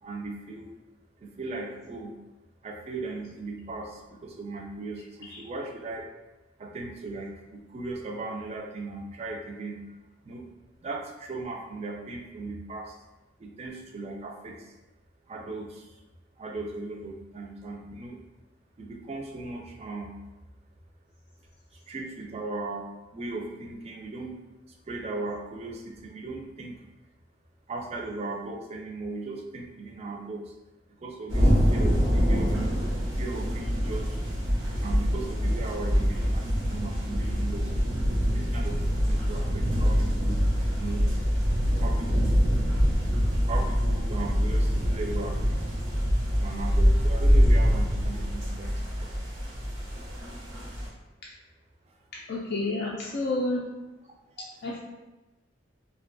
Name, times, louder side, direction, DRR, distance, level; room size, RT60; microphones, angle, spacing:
voice 1, 0.0-0.7 1.2-2.1 2.6-6.1 6.6-10.5 10.8-13.0 13.4-14.7 15.3-16.0 16.4-18.2 18.8-20.1 21.7-24.4 24.7-26.8 27.7-30.5 30.9-32.7 33.2-34.2 34.8-37.7 38.2-40.4 40.8-41.0 41.8-42.4 43.4-45.7 46.3-49.1 51.9-52.0 54.4-54.5, right 3 dB, 35° right, 1 dB, 0.3 m, -37 dB
sound 1, 31.3-50.9, equal, 90° right, 0.7 m, -25 dB
voice 2, 52.1-53.7 54.4-54.8, left 2 dB, 55° left, -4 dB, 0.3 m, -30 dB
2.4 x 2.2 x 2.5 m, 1.1 s
head